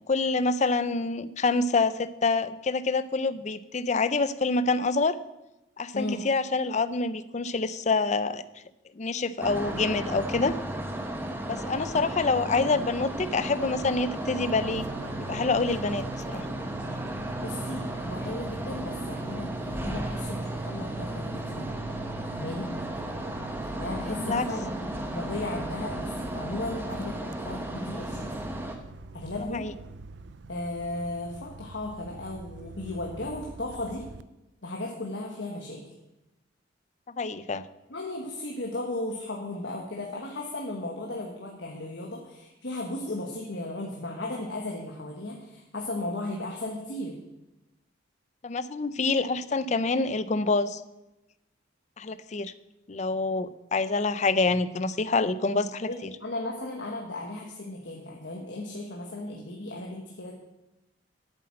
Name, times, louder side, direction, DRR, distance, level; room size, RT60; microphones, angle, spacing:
voice 1, 0.1-5.2 5.8-8.4 8.9-10.5 11.5-16.5 24.2-24.5 29.5-29.7 37.2-37.6 48.4-50.8 52.0-52.5 52.9-55.9, left 3 dB, 35° left, 15 dB, 0.5 m, -26 dB
sound 1, 9.4-28.8, right 1 dB, 10° right, 1.1 m, -35 dB
Fixed-wing aircraft airplane, 14.5-34.2, right 3 dB, 65° right, 0.4 m, -42 dB
voice 2, 17.4-21.8 22.2-22.7 23.8-28.4 29.1-29.7 30.5-34.1 34.6-35.8 37.9-47.2 55.6-60.3, left 2 dB, 65° left, 0 dB, 1.4 m, -36 dB
8.5 x 8.0 x 7.5 m, 0.97 s
head